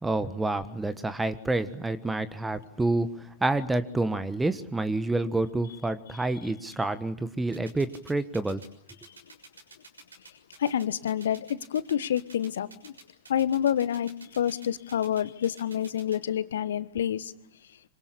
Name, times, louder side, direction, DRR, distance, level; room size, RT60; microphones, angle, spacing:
voice 1, 0.0-8.6, right 2 dB, 10° right, 14 dB, 1.4 m, -28 dB
sound 1, 7.5-16.2, right 3 dB, 75° right, 6.5 m, -49 dB
voice 2, 10.6-11.5 11.7-12.9 13.3-14.1 14.4-17.3, left 10 dB, 65° left, 17 dB, 1.2 m, -28 dB
26.5 x 25.5 x 8.5 m, 0.68 s
figure-of-eight pair, 90°, 0 cm